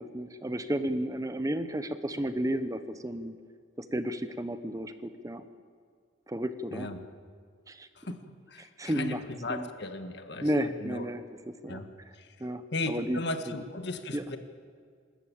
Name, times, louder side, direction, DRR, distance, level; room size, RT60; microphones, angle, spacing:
voice 1, 0.0-3.4 3.8-5.4 6.3-6.9 7.7-7.9 8.6-9.2 9.5-9.7 10.4-11.8 12.4-13.6 14.1-14.2, right 1 dB, 15° right, 10 dB, 0.9 m, -33 dB
voice 2, 8.5-11.0 11.7-11.9 12.1-12.3 12.7-14.4, left 2 dB, 60° left, 7 dB, 1.7 m, -36 dB
27.5 x 13.5 x 8.7 m, 2.1 s
head